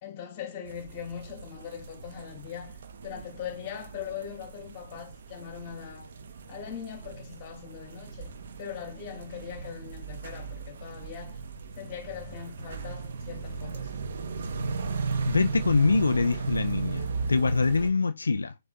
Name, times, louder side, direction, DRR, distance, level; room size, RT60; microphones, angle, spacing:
voice 1, 0.0-2.8 3.0-6.1 6.5-8.3 8.6-11.4 11.8-13.9, left 8 dB, 35° left, 2.7 m, -41 dB
sound 1, 0.7-17.9, right 4 dB, 60° right, 0.8 m, -36 dB
voice 2, 15.3-18.6, left 4 dB, 90° left, 0.3 m, -24 dB
5.0 x 3.8 x 2.2 m
hypercardioid pair, 140°, 0 cm